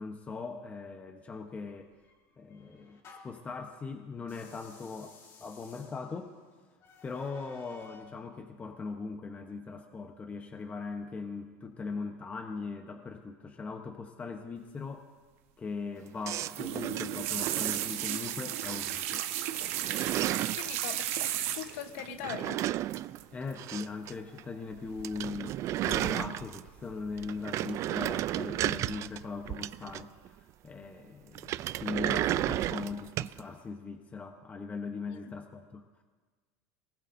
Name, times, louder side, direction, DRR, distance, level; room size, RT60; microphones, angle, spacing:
voice 1, 0.0-1.9 2.4-3.0 3.2-5.1 5.4-6.3 7.0-15.1 15.6-19.2 23.3-25.6 25.8-35.8, left 4 dB, 20° left, 4 dB, 0.9 m, -40 dB
sound 1, 1.7-3.5 4.2-8.2, left 5 dB, 40° left, 2.6 m, -56 dB
sound 2, 16.2-18.3 18.7-19.2 19.5-20.7 22.0-24.1 24.4-24.5 24.8-24.9 25.0-26.8 27.2-30.3 31.3-33.4, right 14 dB, 40° right, 0.3 m, -33 dB
sound 3, 16.4-22.0 22.9-23.2 23.5-23.8 25.0-25.6 25.9-26.5 26.9-27.3 27.7-27.8, right 12 dB, 75° right, 1.2 m, -35 dB
voice 2, 20.2-22.6 35.1-35.3, left 10 dB, 75° left, 8 dB, 1.0 m, -42 dB
22.5 x 20.0 x 2.6 m, 1.4 s
supercardioid pair, 130°, 8 cm